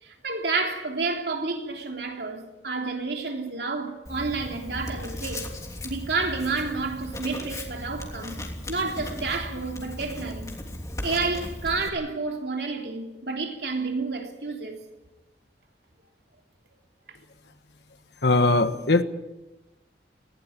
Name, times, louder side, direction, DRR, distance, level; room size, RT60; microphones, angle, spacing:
voice 1, 0.0-5.5 5.8-10.5 11.0-14.8, right 3 dB, 65° right, 3.3 m, -30 dB
Writing, 4.1-11.9, left 1 dB, 20° left, 3.1 m, -37 dB
voice 2, 18.2-19.0, left 2 dB, 70° left, 1.5 m, -20 dB
19.5 x 17.0 x 8.8 m
head